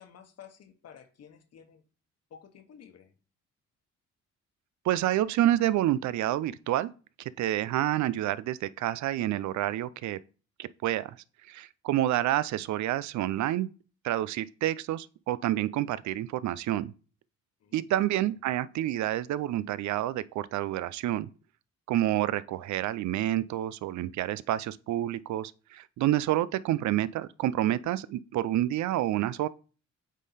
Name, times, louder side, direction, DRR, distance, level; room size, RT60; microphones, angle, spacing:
voice 1, 0.0-1.8 2.3-3.1 9.7-10.0 17.6-18.3, left 8 dB, 55° left, 1.2 m, -53 dB
voice 2, 4.8-6.9 7.2-10.2 10.6-11.2 11.5-13.7 14.0-16.9 17.7-21.3 21.9-29.5, right 13 dB, 70° right, 0.5 m, -28 dB
8.2 x 3.7 x 4.2 m
cardioid pair, 90°, 30 cm